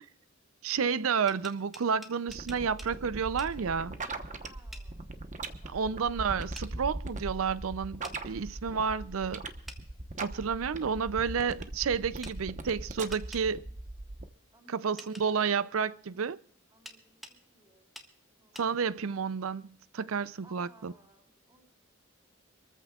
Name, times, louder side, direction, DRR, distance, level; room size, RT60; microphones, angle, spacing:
voice 1, 0.6-4.0 5.7-9.4 10.2-13.6 14.7-16.4 18.6-20.9, right 6 dB, 75° right, 0.5 m, -31 dB
sound 1, 1.3-2.9 3.4-3.5 4.7-4.9 6.5-6.7 8.0-8.2 9.7-9.8 12.2-12.4 13.1-13.5 15.0-15.3 16.9-17.4 17.9-18.1 18.5-18.7, equal, ahead, 1.5 m, -47 dB
sound 2, 2.3-14.2, right 2 dB, 40° right, 1.1 m, -39 dB
voice 2, 4.4-5.1 14.5-15.5 16.7-17.9 18.2-18.6 20.4-21.6, right 2 dB, 20° right, 6.4 m, -61 dB
25.5 x 14.5 x 2.4 m
head